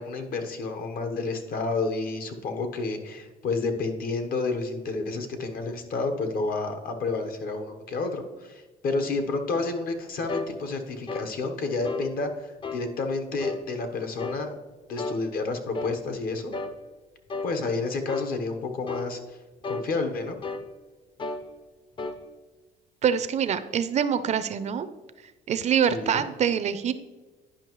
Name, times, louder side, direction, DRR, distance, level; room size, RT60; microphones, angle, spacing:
voice 1, 0.0-14.5 14.9-16.5 17.4-19.2 19.7-20.4 25.9-26.3, left 3 dB, 60° left, 6 dB, 1.0 m, -30 dB
sound 1, 10.3-10.5 11.1-11.3 11.8-12.1 12.6-12.9 13.4-13.6 14.2-14.4 15.0-15.2 15.7-16.0 16.5-16.8 17.3-17.5 18.1-18.3 18.9-19.1 19.6-19.9 20.4-20.7 21.2-21.4 22.0-22.2, left 3 dB, 30° left, 0.5 m, -33 dB
voice 2, 23.0-24.9 25.5-26.9, right 8 dB, 40° right, 12 dB, 0.4 m, -25 dB
10.0 x 5.3 x 3.0 m, 1.2 s
cardioid pair, 110°, 17 cm